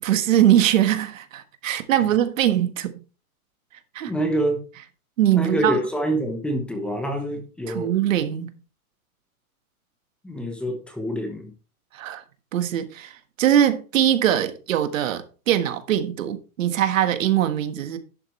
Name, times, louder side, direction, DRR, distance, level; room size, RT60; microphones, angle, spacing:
voice 1, 0.0-3.0 3.9-4.1 5.2-5.8 7.7-8.5 11.9-12.2 12.5-18.0, right 11 dB, 60° right, 1.5 m, -22 dB
voice 2, 4.1-4.6 5.3-7.9 10.2-11.5, right 1 dB, ahead, 0.9 m, -26 dB
11.5 x 7.8 x 3.2 m
hypercardioid pair, 165°, 44 cm